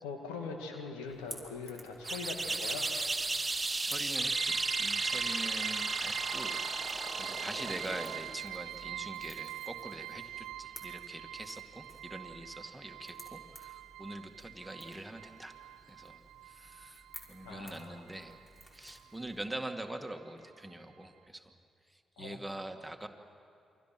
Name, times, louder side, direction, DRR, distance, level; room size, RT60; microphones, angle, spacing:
voice 1, 0.0-2.9 17.4-18.1 22.2-22.4, left 4 dB, 80° left, 3 dB, 2.2 m, -42 dB
Crackle / Crack, 1.1-19.4, equal, 25° left, 5.7 m, -55 dB
sound 1, 2.0-8.4, right 3 dB, 25° right, 1.3 m, -34 dB
voice 2, 3.8-6.6 6.8-15.5 15.9-16.2 16.5-18.3 18.7-21.5 22.2-23.1, right 1 dB, 10° right, 4 dB, 2.2 m, -44 dB
sound 2, 4.3-18.6 18.9-20.0 20.3-20.4 20.8-20.9, right 14 dB, 75° right, 0.5 m, -44 dB
28.5 x 24.0 x 6.1 m, 2.5 s
hypercardioid pair, 40°, 0 cm